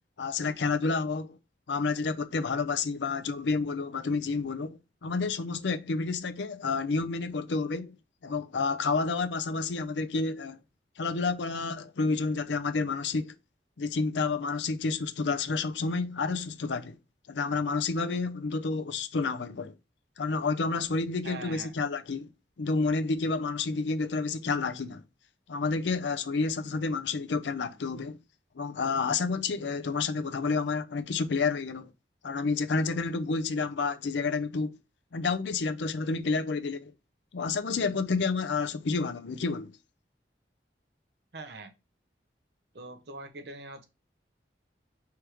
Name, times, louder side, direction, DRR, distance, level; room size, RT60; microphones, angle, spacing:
voice 1, 0.2-1.4 1.7-7.9 8.2-10.6 11.0-13.3 13.8-16.9 17.3-19.7 20.2-22.3 22.6-25.0 25.5-28.2 28.5-31.9 32.2-34.8 35.1-36.9 37.3-39.7, left 4 dB, 90° left, 0.5 m, -30 dB
voice 2, 21.2-21.7 41.3-41.7 42.7-43.9, right 2 dB, 70° right, 0.9 m, -42 dB
4.7 x 3.5 x 3.0 m
head